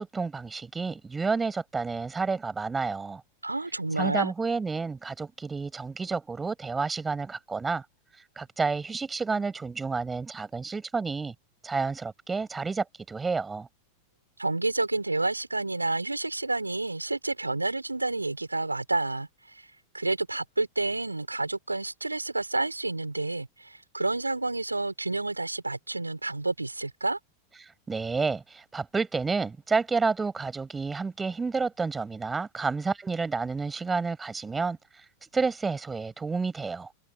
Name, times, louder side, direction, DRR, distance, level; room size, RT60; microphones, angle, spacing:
voice 1, 0.0-3.2 4.0-7.8 8.4-11.3 11.6-13.7 27.9-34.8 35.2-36.9, right 4 dB, 15° right, 6.4 m, -30 dB
voice 2, 3.4-4.3 14.4-19.3 19.5-19.7 19.9-27.2, right 2 dB, 85° right, 4.8 m, -29 dB
figure-of-eight pair, 90°, 0 cm